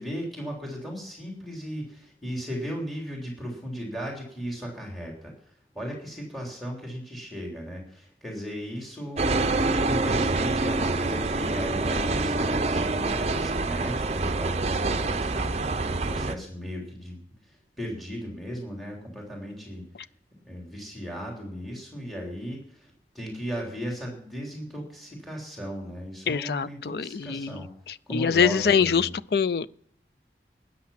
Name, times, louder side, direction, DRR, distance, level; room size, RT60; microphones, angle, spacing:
voice 1, 0.0-5.3 5.8-17.2 17.5-19.8 20.5-27.7 28.1-29.1, equal, ahead, 3.4 m, -36 dB
sound 1, 9.2-16.4, right 3 dB, 35° right, 0.6 m, -26 dB
voice 2, 26.3-29.7, left 6 dB, 60° left, 0.4 m, -25 dB
13.0 x 9.7 x 5.8 m
head